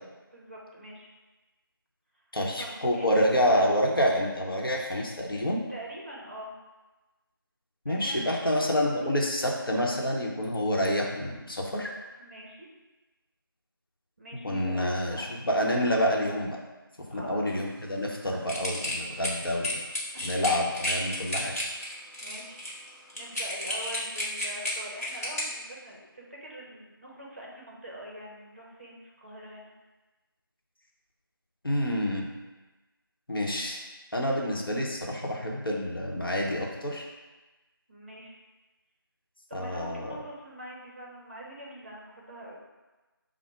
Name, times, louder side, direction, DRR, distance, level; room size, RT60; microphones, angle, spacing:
voice 1, 0.3-1.1 2.6-3.7 5.7-6.5 7.8-8.5 12.2-12.7 14.2-15.2 17.1-17.5 20.1-20.5 22.2-22.6 23.2-29.7 37.9-38.4 39.5-42.6, right 1 dB, 35° right, -4 dB, 0.8 m, -44 dB
voice 2, 2.3-5.6 7.8-11.9 14.3-16.6 17.1-19.8 20.2-21.5 31.6-32.3 33.3-33.8 34.1-37.1 39.5-40.2, equal, 70° left, -1 dB, 0.9 m, -28 dB
sound 1, 18.5-25.4, left 1 dB, 40° left, 1.0 m, -32 dB
4.7 x 2.1 x 4.5 m, 1.1 s
figure-of-eight pair, 170°, 12 cm